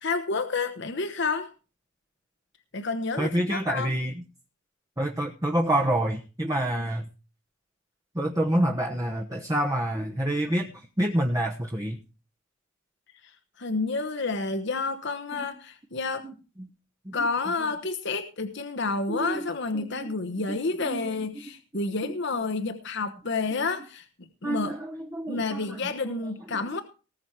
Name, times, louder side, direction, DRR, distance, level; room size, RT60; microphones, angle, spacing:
voice 1, 0.0-1.5 2.7-3.9 13.6-16.2 17.1-24.8 25.3-26.8, left 3 dB, 60° left, 8 dB, 1.1 m, -30 dB
voice 2, 3.2-4.2 5.0-7.1 8.1-12.0 15.3-15.5 16.6-16.7 17.0-17.2 17.6-17.7 19.1-19.4 19.9-20.0 20.5-21.2 23.6-23.7 24.4-26.2 26.7-26.8, right 1 dB, 15° right, 1 dB, 1.1 m, -28 dB
19.0 x 7.1 x 4.6 m, 0.33 s
head